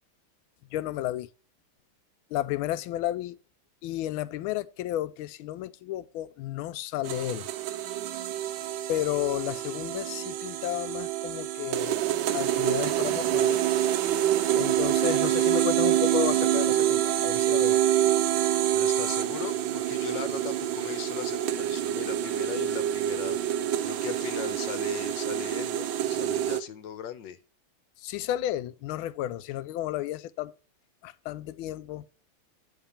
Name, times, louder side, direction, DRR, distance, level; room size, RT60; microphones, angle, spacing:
voice 1, 0.7-1.3 2.3-3.4 3.8-7.5 8.9-12.0 12.3-13.6 14.2-14.3 14.6-17.8 28.0-30.5 31.0-32.0, left 13 dB, 90° left, 1.4 m, -32 dB
sound 1, 7.0-26.6, right 12 dB, 75° right, 1.3 m, -27 dB
voice 2, 18.7-23.4 23.8-27.4, left 9 dB, 70° left, 1.3 m, -38 dB
8.7 x 3.6 x 6.8 m
omnidirectional pair, 2.2 m